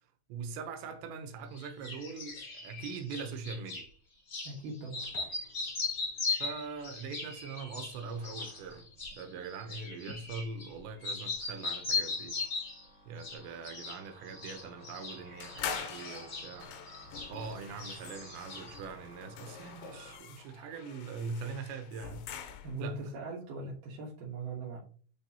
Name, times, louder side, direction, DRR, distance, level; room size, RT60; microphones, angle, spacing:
voice 1, 0.3-3.9 6.4-8.9 9.2-12.4 13.1-16.7 17.3-22.3 22.8-23.0, right 5 dB, 80° right, 3.0 m, -42 dB
sound 1, 1.6-3.9 4.3-4.5 4.9-10.7 11.0-12.8 13.2-14.0 14.3-17.5 17.8-18.8, left 4 dB, 35° left, 1.7 m, -38 dB
voice 2, 4.4-5.1 22.6-24.8, right 3 dB, 60° right, 2.5 m, -40 dB
sound 2, 5.0-20.2, equal, 15° left, 0.9 m, -57 dB
sound 3, 15.4-22.9, left 7 dB, 80° left, 2.4 m, -44 dB
9.8 x 3.7 x 2.8 m
omnidirectional pair, 5.2 m